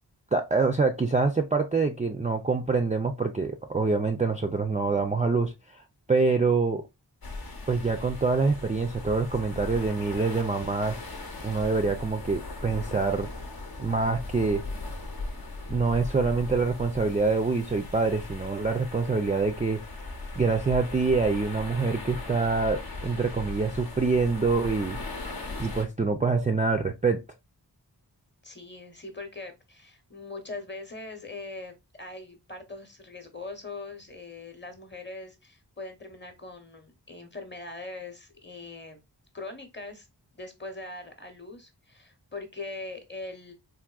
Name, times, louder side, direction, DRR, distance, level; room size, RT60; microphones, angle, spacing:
voice 1, 0.3-5.8 6.1-6.8 7.7-11.0 11.4-13.3 13.8-14.6 15.7-19.8 20.4-25.0 25.6-27.2, right 4 dB, 20° right, 0.3 m, -25 dB
sound 1, 7.2-25.9, left 2 dB, 60° left, 0.7 m, -38 dB
voice 2, 28.4-39.0 39.3-40.1 40.3-43.5, left 3 dB, 25° left, 0.8 m, -41 dB
3.6 x 2.6 x 2.3 m
wide cardioid pair, 45°, 42 cm